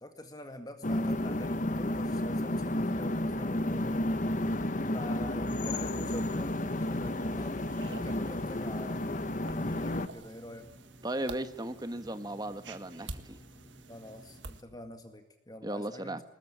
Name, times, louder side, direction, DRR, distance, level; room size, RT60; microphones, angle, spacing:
voice 1, 0.0-4.0 4.9-9.1 9.5-10.7 13.9-16.2, left 1 dB, 20° left, 6 dB, 2.0 m, -46 dB
sound 1, 0.8-10.1, left 1 dB, 45° left, 1.2 m, -32 dB
sound 2, 1.7-14.5, equal, 5° left, 2.3 m, -56 dB
sound 3, 5.7-14.6, right 3 dB, 80° right, 1.8 m, -50 dB
voice 2, 11.0-13.4 15.6-16.2, right 1 dB, 20° right, 10 dB, 1.4 m, -36 dB
21.0 x 19.0 x 9.9 m, 0.99 s
head